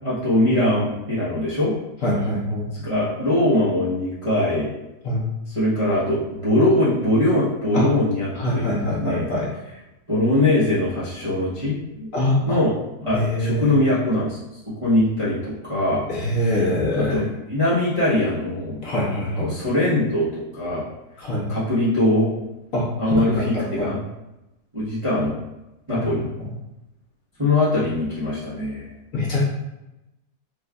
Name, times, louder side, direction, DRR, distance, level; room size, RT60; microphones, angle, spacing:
voice 1, 0.0-1.7 2.7-4.7 5.5-9.3 10.1-12.1 12.4-12.7 13.0-16.0 16.4-16.7 17.0-18.8 19.4-20.8 21.5-22.3 23.0-24.0 24.7-25.3 25.9-26.2 27.4-28.9, left 1 dB, 25° right, -11 dB, 0.8 m, -22 dB
voice 2, 2.0-2.7 5.0-5.2 7.7-7.8 8.4-9.5 12.1-12.3 13.1-13.7 16.1-17.2 18.8-19.5 21.2-21.4 22.7-22.8 23.3-23.9 29.1-29.4, left 1 dB, 55° left, -7 dB, 1.4 m, -24 dB
5.3 x 2.5 x 2.3 m, 0.96 s
omnidirectional pair, 1.7 m